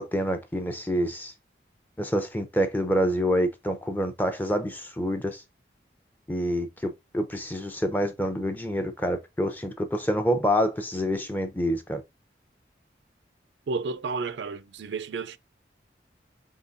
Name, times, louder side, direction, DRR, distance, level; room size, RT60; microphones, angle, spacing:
voice 1, 0.0-1.3 2.0-5.4 6.3-12.0, equal, 10° left, 0.6 m, -27 dB
voice 2, 13.7-15.4, right 4 dB, 85° right, 0.4 m, -31 dB
4.4 x 3.7 x 2.6 m
head